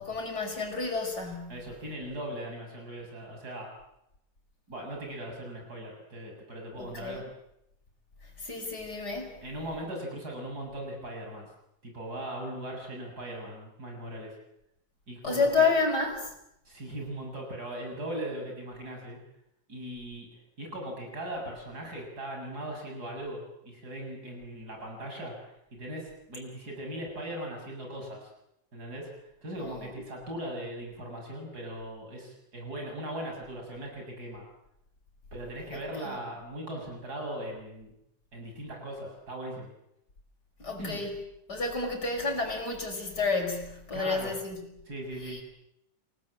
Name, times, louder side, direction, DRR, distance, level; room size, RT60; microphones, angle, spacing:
voice 1, 0.0-1.6 6.8-7.2 8.4-9.3 15.2-16.3 29.6-29.9 36.0-36.2 40.6-41.1 41.5-44.6 45.2-45.4, left 4 dB, 55° left, 3 dB, 5.9 m, -30 dB
voice 2, 1.5-3.7 4.7-7.2 9.4-11.5 11.8-14.3 15.1-15.7 16.6-19.2 19.7-20.3 20.6-25.3 25.7-28.3 28.7-29.1 29.4-34.4 35.3-37.9 38.3-39.7 40.8-41.0 43.9-44.3 44.9-45.4, right 1 dB, 50° right, 1 dB, 7.8 m, -39 dB
29.0 x 18.0 x 8.8 m, 0.81 s
omnidirectional pair, 2.1 m